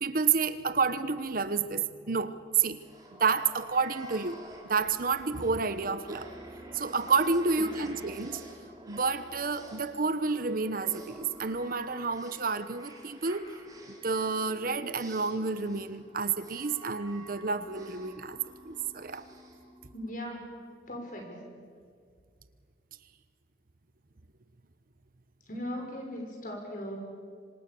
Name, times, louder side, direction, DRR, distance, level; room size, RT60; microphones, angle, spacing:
voice 1, 0.0-2.8 3.1-4.4 4.7-6.3 6.7-8.4 8.9-13.5 14.0-18.4 18.7-19.2, right 4 dB, 55° right, 12 dB, 1.0 m, -29 dB
sound 1, 2.7-20.4, right 1 dB, 20° right, 3.8 m, -49 dB
voice 2, 19.9-20.6 20.9-21.6 25.5-27.0, equal, 50° left, 2 dB, 6.1 m, -38 dB
26.5 x 25.5 x 7.0 m, 2.1 s
head